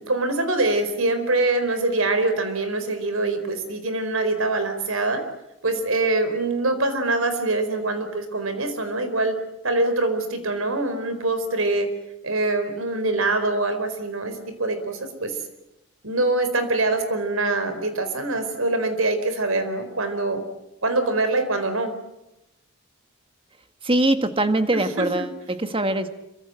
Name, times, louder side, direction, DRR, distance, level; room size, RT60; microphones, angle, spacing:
voice 1, 0.0-5.2 5.6-9.4 9.6-11.9 12.2-15.3 16.0-20.4 20.8-21.9 24.7-25.3, right 2 dB, 80° right, 9 dB, 4.5 m, -24 dB
voice 2, 23.8-26.1, right 1 dB, 25° right, 8 dB, 1.8 m, -22 dB
26.5 x 24.5 x 7.8 m, 0.93 s
head